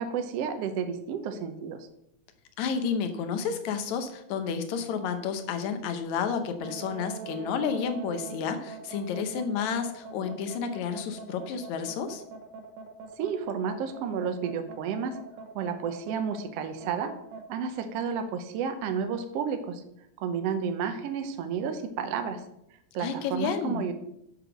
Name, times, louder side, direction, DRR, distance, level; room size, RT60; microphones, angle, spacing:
voice 1, 0.0-1.9 13.2-15.2 15.5-17.1 17.5-19.8 20.2-22.4 22.9-23.9, right 6 dB, 70° right, 7 dB, 1.6 m, -31 dB
voice 2, 2.6-12.2 23.0-23.8, left 6 dB, 75° left, 8 dB, 2.2 m, -31 dB
sound 1, 6.6-17.4, right 6 dB, 90° right, 2.5 m, -43 dB
6.9 x 6.5 x 6.0 m, 0.79 s
omnidirectional pair, 3.4 m